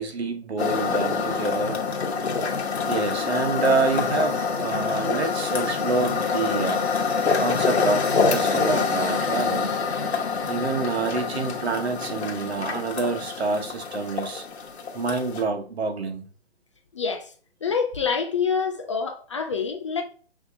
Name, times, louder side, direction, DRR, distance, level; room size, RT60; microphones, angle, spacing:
voice 1, 0.0-1.8 2.9-6.9 7.3-9.7 10.5-14.4 14.9-16.2, right 3 dB, 80° right, 1.1 m, -27 dB
sound 1, 0.6-15.4, left 5 dB, 90° left, 1.1 m, -26 dB
voice 2, 16.9-17.3 17.6-20.0, left 6 dB, 30° left, 0.4 m, -26 dB
6.1 x 2.9 x 2.6 m
hypercardioid pair, 145°, 32 cm